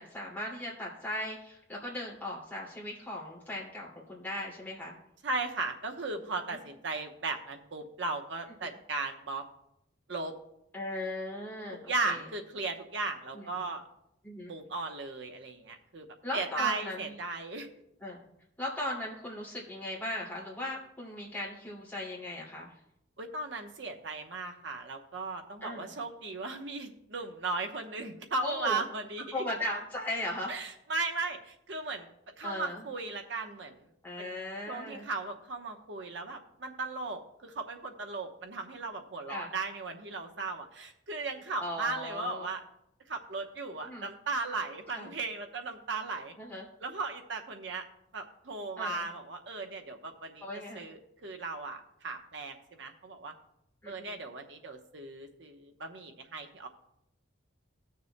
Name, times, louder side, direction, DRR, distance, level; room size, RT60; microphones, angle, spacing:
voice 1, 0.0-4.9 10.7-12.3 13.3-13.4 14.2-14.5 16.2-17.1 18.0-18.2 18.6-22.7 25.6-25.9 28.4-28.8 29.3-30.5 32.4-32.8 34.0-35.0 39.3-39.5 41.6-42.5 43.8-44.1 44.9-45.1 46.4-46.6 48.8-49.1 50.4-50.8 53.8-54.2, left 1 dB, 10° left, -5 dB, 2.3 m, -38 dB
voice 2, 5.2-9.4 10.1-10.3 11.7-13.8 14.5-16.1 16.3-17.7 23.2-29.4 30.5-32.1 32.4-33.8 34.2-34.4 34.7-42.6 43.1-46.4 46.8-47.8 48.1-50.4 50.7-53.3 53.9-56.7, right 3 dB, 70° right, 4 dB, 0.9 m, -36 dB
20.0 x 6.7 x 2.2 m, 0.79 s
head